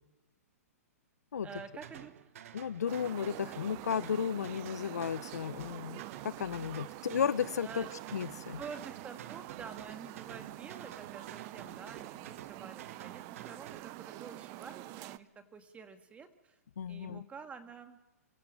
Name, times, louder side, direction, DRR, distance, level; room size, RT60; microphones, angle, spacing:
voice 1, 1.4-2.1 7.6-8.0 8.6-16.6 16.9-18.0, right 5 dB, 15° right, 8 dB, 1.9 m, -48 dB
sound 1, 1.5-13.8, right 10 dB, 60° right, 1.3 m, -51 dB
voice 2, 2.5-7.8 8.1-8.6 16.8-17.2, left 7 dB, 80° left, 18 dB, 0.7 m, -34 dB
sound 2, 2.9-15.2, right 18 dB, 35° right, 0.6 m, -46 dB
27.5 x 16.5 x 6.5 m, 1.0 s
hypercardioid pair, 135°, 9 cm